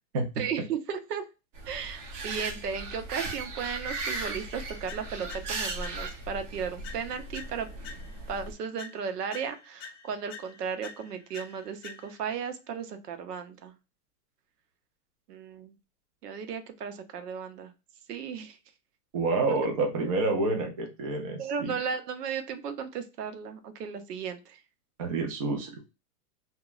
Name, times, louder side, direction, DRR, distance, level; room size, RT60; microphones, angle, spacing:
voice 1, 0.4-1.2 1.7-7.7 8.3-13.7 15.3-15.8 16.2-17.7 18.1-18.6 21.4-24.6, right 6 dB, 90° right, 8 dB, 0.7 m, -35 dB
sound 1, 1.5-8.5, right 3 dB, 50° right, 0.9 m, -37 dB
sound 2, 4.9-6.4 6.8-8.4 8.8-12.4, left 6 dB, 45° left, 0.7 m, -48 dB
voice 2, 19.1-21.7 25.0-25.8, right 3 dB, 25° right, 3 dB, 0.4 m, -28 dB
2.8 x 2.2 x 2.4 m, 0.28 s
hypercardioid pair, 145°, 46 cm